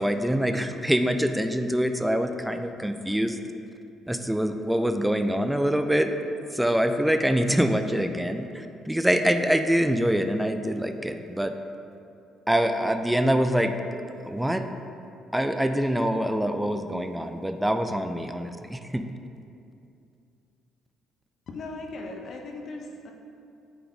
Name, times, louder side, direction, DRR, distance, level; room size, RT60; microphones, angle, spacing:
voice 1, 0.0-3.4 4.1-6.1 6.5-11.5 12.5-13.7 14.2-14.7 15.3-19.0, equal, 5° right, 7 dB, 0.3 m, -25 dB
voice 2, 21.5-23.1, left 2 dB, 50° left, 2 dB, 0.7 m, -38 dB
9.3 x 3.9 x 3.5 m, 2.6 s
cardioid pair, 120°, 0 cm